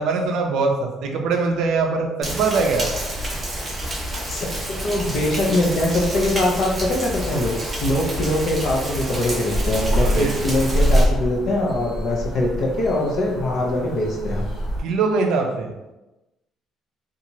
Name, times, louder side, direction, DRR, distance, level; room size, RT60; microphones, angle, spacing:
voice 1, 0.0-2.9 10.0-10.4 14.8-15.7, right 4 dB, 70° right, 3 dB, 0.4 m, -22 dB
Rain, 2.2-11.0, right 1 dB, 20° right, 0.6 m, -29 dB
voice 2, 4.3-14.5, left 1 dB, 45° left, 0 dB, 0.6 m, -23 dB
sound 1, 9.5-14.8, equal, 75° left, 1.2 m, -24 dB
2.7 x 2.3 x 2.9 m, 1.0 s
cardioid pair, 170°, 0 cm